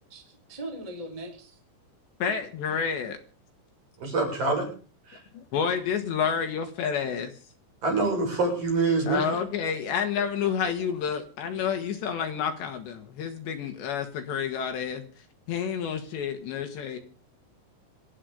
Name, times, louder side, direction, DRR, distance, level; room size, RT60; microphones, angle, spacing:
voice 1, 0.1-1.6, right 1 dB, 10° right, 1 dB, 3.4 m, -40 dB
voice 2, 2.2-3.2 5.3-7.3 9.1-15.0 15.5-17.0, left 7 dB, 70° left, 6 dB, 3.6 m, -29 dB
voice 3, 4.0-4.7 5.1-5.2 7.8-9.3, right 3 dB, 40° right, 0 dB, 8.9 m, -25 dB
27.5 x 9.9 x 5.1 m, 0.38 s
omnidirectional pair, 5.8 m